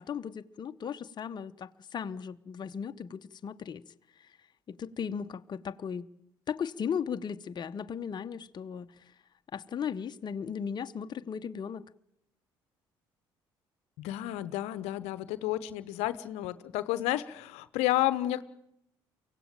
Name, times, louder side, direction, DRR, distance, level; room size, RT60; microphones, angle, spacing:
voice 1, 0.0-3.8 4.2-4.3 4.7-6.1 6.5-8.9 9.5-11.8, left 7 dB, 40° left, 0.8 m, -36 dB
voice 2, 14.0-18.4, left 15 dB, 70° left, 0.8 m, -31 dB
24.0 x 16.5 x 8.9 m
hypercardioid pair, 55°, 11 cm